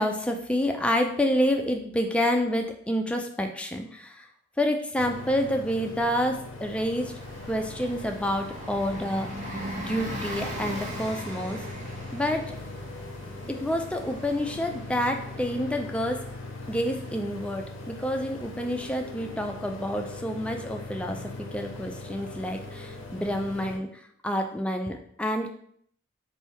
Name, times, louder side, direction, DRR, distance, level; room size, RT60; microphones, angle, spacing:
voice 1, 0.0-4.3 4.6-7.1 7.5-9.3 9.8-11.7 12.1-12.5 13.5-16.2 16.7-25.5, equal, 5° left, 3 dB, 0.3 m, -28 dB
sound 1, 5.0-23.8, left 2 dB, 75° left, 0.5 m, -40 dB
Bus, 7.1-19.4, right 1 dB, 35° right, 0.7 m, -41 dB
3.3 x 2.6 x 4.3 m, 0.66 s
head